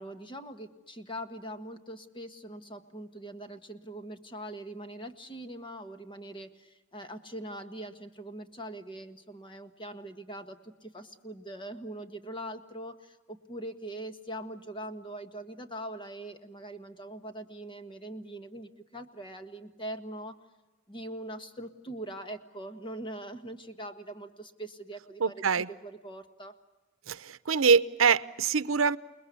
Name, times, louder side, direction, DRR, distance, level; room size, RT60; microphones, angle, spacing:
voice 1, 0.0-20.4 20.9-26.5, right 1 dB, 25° left, 8 dB, 1.6 m, -42 dB
voice 2, 25.2-25.7 27.1-29.0, right 5 dB, 75° right, 15 dB, 0.8 m, -24 dB
29.0 x 20.5 x 8.3 m, 1.2 s
head